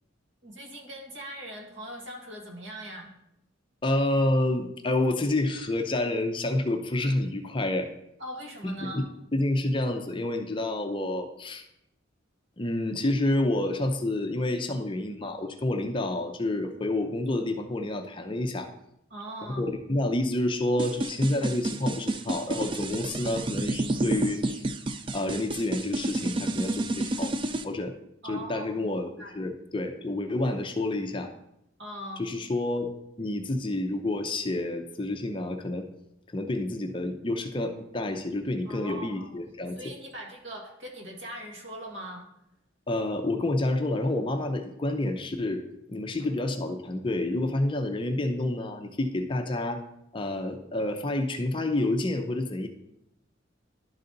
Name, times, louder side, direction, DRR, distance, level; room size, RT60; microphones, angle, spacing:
voice 1, 0.4-3.1 8.2-9.1 19.1-19.7 28.2-28.9 29.2-29.3 31.8-32.3 38.7-39.3 39.8-42.3, right 1 dB, 65° right, -1 dB, 1.9 m, -40 dB
voice 2, 3.8-7.9 8.6-9.0 9.3-11.6 12.6-18.7 19.6-24.6 25.1-27.3 27.6-27.9 28.2-31.3 32.2-35.9 36.3-39.8 42.9-45.6 45.9-49.8 50.1-52.7, left 1 dB, 25° left, 6 dB, 0.5 m, -29 dB
sound 1, 20.8-27.6, right 2 dB, 25° right, 0.3 m, -30 dB
11.5 x 4.0 x 3.9 m, 0.82 s
head